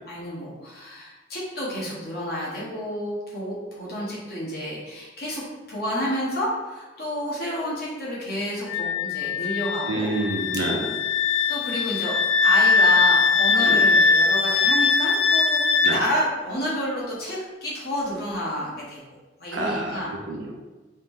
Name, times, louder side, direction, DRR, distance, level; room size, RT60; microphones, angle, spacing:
voice 1, 0.0-5.4 5.7-10.1 11.5-12.1 12.4-15.6 15.9-19.0 19.4-20.1, left 1 dB, 55° left, -6 dB, 1.2 m, -30 dB
Wind instrument woodwind instrument, 8.7-16.0, left 4 dB, 75° left, 0.3 m, -21 dB
voice 2, 9.9-10.9 13.6-13.8 15.8-16.0 19.5-20.5, right 2 dB, 75° right, 0 dB, 0.6 m, -28 dB
4.0 x 2.6 x 3.5 m, 1.2 s
head